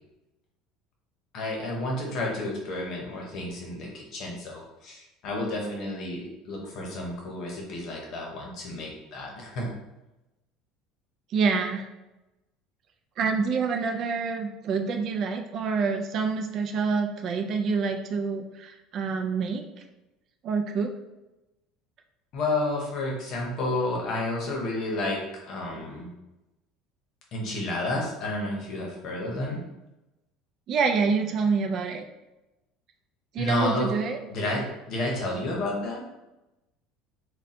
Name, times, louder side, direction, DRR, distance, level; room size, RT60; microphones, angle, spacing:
voice 1, 1.3-9.7 22.3-25.2 25.5-26.1 27.3-29.6 33.4-33.9 34.3-36.0, left 2 dB, 40° left, -1 dB, 0.9 m, -31 dB
voice 2, 11.3-11.9 13.2-19.6 20.4-20.9 30.7-32.0 33.3-34.2, right 5 dB, 35° right, 4 dB, 0.3 m, -27 dB
3.7 x 2.2 x 4.1 m, 0.99 s
cardioid pair, 175°, 0 cm